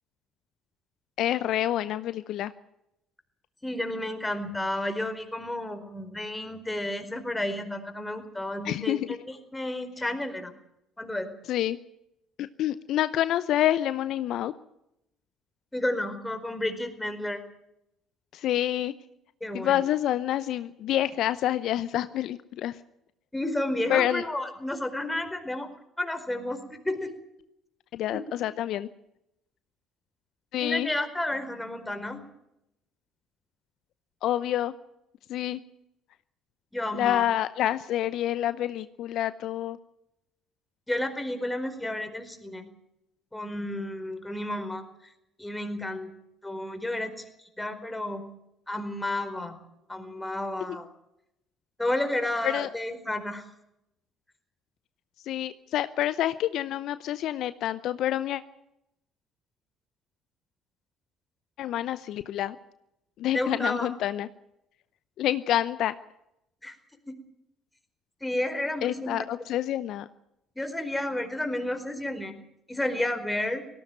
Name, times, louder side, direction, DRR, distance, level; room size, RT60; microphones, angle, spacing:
voice 1, 1.2-2.5 8.6-9.1 11.5-11.8 12.4-14.5 18.3-18.9 19.5-22.8 23.9-24.2 27.9-28.9 30.5-30.9 34.2-34.7 35.3-35.6 36.9-39.8 50.7-50.8 52.4-52.7 55.2-58.4 61.6-62.6 63.2-64.3 65.2-65.9 68.8-70.1, left 12 dB, 65° left, 14 dB, 0.7 m, -27 dB
voice 2, 3.6-10.5 11.0-11.3 15.7-17.4 19.4-19.8 23.3-25.7 26.0-27.1 28.1-28.2 30.6-32.3 36.7-37.3 40.9-42.6 43.3-44.8 45.4-46.1 46.4-47.1 47.4-48.3 48.7-49.6 49.9-50.9 51.8-53.4 63.3-63.9 66.6-66.7 68.2-69.3 70.6-72.3 72.7-73.6, left 1 dB, 10° left, 7 dB, 4.6 m, -31 dB
18.5 x 16.5 x 9.2 m, 0.82 s
hypercardioid pair, 60°, 0 cm